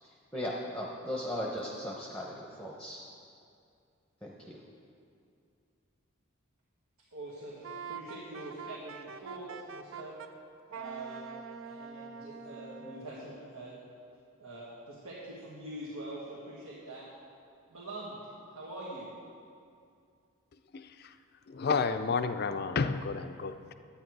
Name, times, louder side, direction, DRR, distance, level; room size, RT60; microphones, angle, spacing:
voice 1, 0.0-3.0 4.2-4.6, equal, 5° left, 0.8 m, -38 dB
voice 2, 7.1-10.1 10.7-13.8 14.4-17.1 17.7-18.2 18.5-19.1, right 2 dB, 85° right, 1.8 m, -44 dB
Wind instrument woodwind instrument, 7.6-10.3 10.7-13.1, right 5 dB, 60° right, 0.5 m, -44 dB
voice 3, 20.7-21.2 21.5-23.7, left 5 dB, 45° left, 0.4 m, -31 dB
11.5 x 9.0 x 4.6 m
head